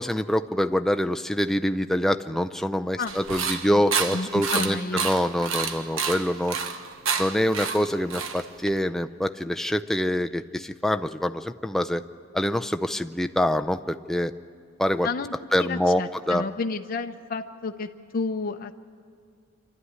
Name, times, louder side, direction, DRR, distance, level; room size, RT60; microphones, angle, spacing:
voice 1, 0.0-6.6 7.2-12.0 12.3-14.3 14.8-15.1 15.5-16.0 16.3-16.5, equal, ahead, 7 dB, 0.5 m, -25 dB
sound 1, 3.1-8.8, right 6 dB, 65° right, 1.2 m, -29 dB
voice 2, 4.1-5.1 15.0-15.3 15.6-17.9 18.1-18.7, left 3 dB, 45° left, 5 dB, 0.6 m, -31 dB
26.5 x 13.0 x 9.7 m, 2.4 s
head